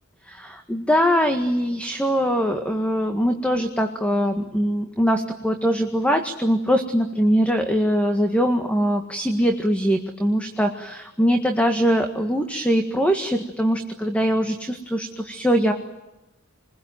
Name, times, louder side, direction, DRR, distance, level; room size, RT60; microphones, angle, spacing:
voice 1, 0.3-15.7, equal, 5° left, 5 dB, 1.8 m, -22 dB
28.5 x 21.5 x 9.4 m, 0.98 s
head